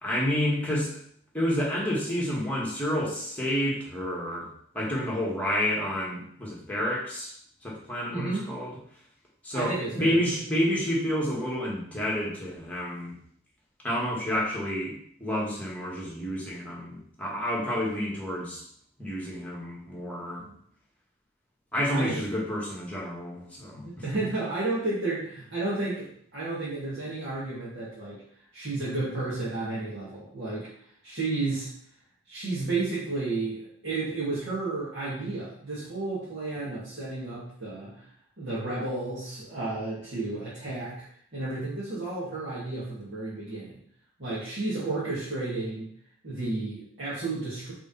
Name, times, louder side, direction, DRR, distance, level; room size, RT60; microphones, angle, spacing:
voice 1, 0.0-1.0 1.3-4.5 4.7-7.3 7.6-8.7 9.4-13.1 13.8-18.6 19.0-20.4 21.7-23.8, equal, 5° left, -5 dB, 1.8 m, -29 dB
voice 2, 8.1-8.4 9.5-10.3 20.4-20.6 21.9-22.2 23.8-28.2 28.5-30.7 31.0-31.7 32.3-38.1 38.4-41.0 41.3-43.7 44.2-45.9 46.2-47.7, right 2 dB, 60° right, -11 dB, 2.4 m, -32 dB
5.2 x 4.4 x 5.6 m, 0.63 s
head